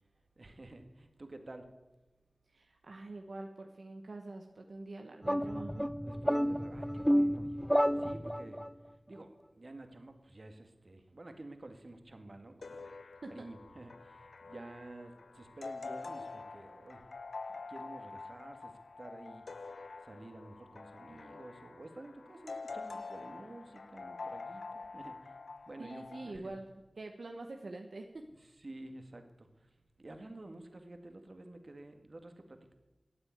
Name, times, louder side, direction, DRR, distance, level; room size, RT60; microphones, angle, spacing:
voice 1, 0.4-1.7 6.1-7.7 7.9-8.6 9.1-13.0 13.3-17.1 17.5-19.8 20.0-25.3 25.7-26.6 28.4-29.7 30.0-32.7, right 2 dB, 55° right, 6 dB, 1.9 m, -51 dB
voice 2, 2.5-5.9 13.2-13.5 25.8-28.2, right 2 dB, 75° right, 3 dB, 1.1 m, -45 dB
sound 1, 5.2-8.7, equal, ahead, 0.4 m, -30 dB
sound 2, 12.6-26.3, left 4 dB, 80° left, 0.4 m, -46 dB
13.0 x 8.9 x 9.2 m, 1.1 s
wide cardioid pair, 50°, 0 cm